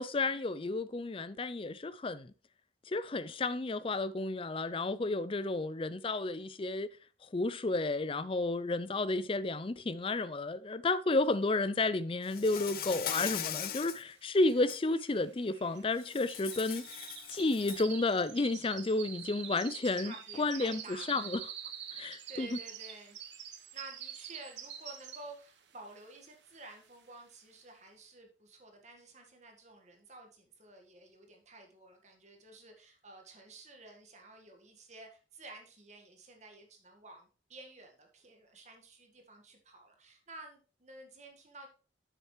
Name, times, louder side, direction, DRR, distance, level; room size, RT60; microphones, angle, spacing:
voice 1, 0.0-2.3 2.9-6.9 7.3-16.8 17.3-21.4 21.9-22.5, left 2 dB, 30° left, 0.4 m, -32 dB
Insect, 12.3-14.0 14.5-14.8 16.0-17.9, left 9 dB, 50° left, 0.8 m, -39 dB
sound 1, 13.8-13.9 14.0-25.5 25.9-26.2 26.7-26.8, right 9 dB, 75° right, 1.2 m, -46 dB
voice 2, 19.8-21.3 22.0-23.2 23.5-41.7, right 2 dB, 40° right, 1.7 m, -52 dB
9.6 x 7.5 x 3.2 m
head